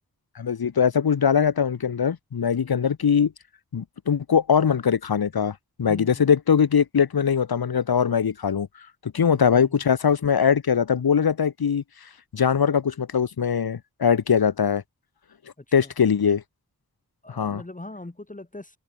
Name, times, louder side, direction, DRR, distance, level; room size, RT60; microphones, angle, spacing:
voice 1, 0.3-3.3 3.7-8.7 9.0-11.8 12.3-14.8 15.7-16.4 17.3-17.6, left 7 dB, 85° left, 1.3 m, -21 dB
voice 2, 5.9-6.3 9.2-9.9 15.6-15.9 17.2-18.8, left 2 dB, 20° left, 2.5 m, -40 dB
wide cardioid pair, 85°, 36 cm